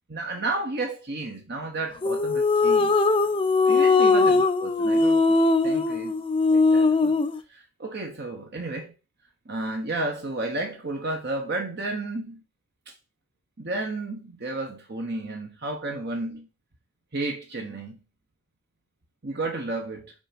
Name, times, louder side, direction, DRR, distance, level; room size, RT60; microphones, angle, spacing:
voice 1, 0.1-2.9 3.7-5.4 5.6-6.2 6.5-7.2 7.5-8.9 9.5-12.4 13.6-16.5 17.1-18.0 19.2-20.1, right 2 dB, 45° right, 1.0 m, -32 dB
sound 1, 2.0-7.4, left 3 dB, 25° left, 0.4 m, -20 dB
5.4 x 4.4 x 5.1 m
head